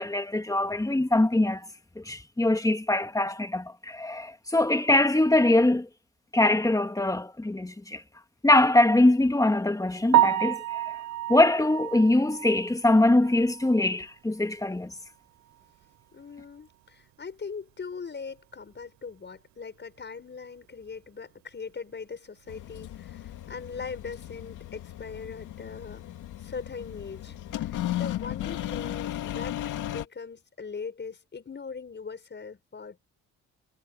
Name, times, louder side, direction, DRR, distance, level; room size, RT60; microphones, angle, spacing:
voice 1, 0.0-1.7 2.0-5.9 6.3-8.0 8.4-10.8 11.3-14.9, left 2 dB, 10° left, 1.9 m, -23 dB
Piano, 10.1-14.1 14.4-14.6 15.1-15.2 15.5-15.6 18.7-18.8 27.3-27.5, right 14 dB, 65° right, 0.5 m, -28 dB
voice 2, 16.1-26.1 26.4-29.6 29.8-33.0, left 5 dB, 35° left, 6.6 m, -40 dB
sound 1, 22.5-30.0, left 13 dB, 85° left, 2.3 m, -35 dB
cardioid pair, 90°, 30 cm